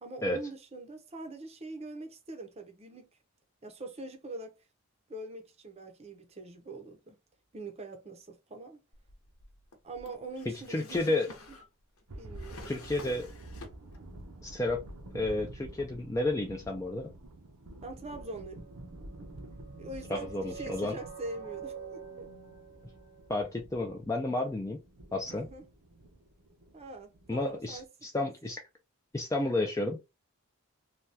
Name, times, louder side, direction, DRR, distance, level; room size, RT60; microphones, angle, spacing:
voice 1, 0.0-3.2 3.6-4.6 5.1-7.2 7.5-8.8 9.8-11.6 12.2-12.7 17.8-18.6 19.8-22.3 25.3-25.6 26.7-27.9, right 2 dB, 30° right, 0.6 m, -43 dB
Drawer open or close, 8.9-14.1 14.4-15.2, left 2 dB, 85° left, 0.9 m, -50 dB
voice 2, 10.7-11.3 12.7-13.3 14.4-14.8 15.1-17.1 20.1-20.9 23.3-24.8 25.1-25.5 27.3-28.6 29.1-30.0, left 2 dB, 15° left, 0.3 m, -31 dB
sound 1, 12.1-27.9, right 1 dB, 80° right, 0.7 m, -49 dB
sound 2, 18.1-23.5, right 6 dB, 40° left, 1.0 m, -47 dB
3.3 x 2.2 x 2.7 m
head